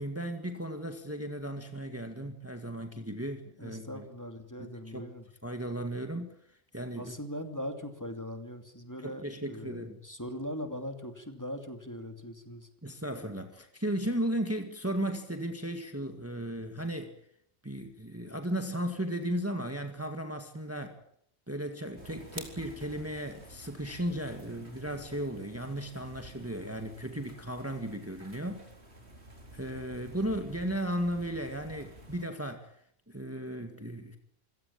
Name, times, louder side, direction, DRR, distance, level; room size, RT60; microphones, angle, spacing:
voice 1, 0.0-4.0 4.6-5.1 5.4-6.3 6.7-7.2 9.0-10.0 12.8-17.1 17.6-21.0 21.5-28.7 29.5-32.7 33.1-34.2, right 1 dB, 15° right, 6 dB, 1.9 m, -35 dB
voice 2, 3.6-5.2 6.9-12.7, equal, 15° left, 6 dB, 2.8 m, -40 dB
sound 1, 22.0-32.2, right 1 dB, 85° right, 4.6 m, -50 dB
27.0 x 17.0 x 8.7 m, 0.71 s
omnidirectional pair, 1.1 m